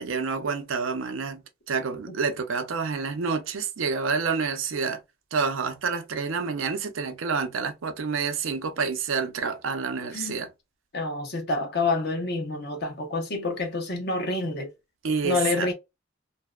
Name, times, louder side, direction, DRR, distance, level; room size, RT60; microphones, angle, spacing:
voice 1, 0.0-1.4 1.7-5.0 5.3-10.5 15.0-15.7, right 5 dB, 90° right, 0.5 m, -28 dB
voice 2, 10.1-10.5 10.9-14.7 15.2-15.7, left 3 dB, 55° left, 0.8 m, -28 dB
2.6 x 2.1 x 2.3 m
head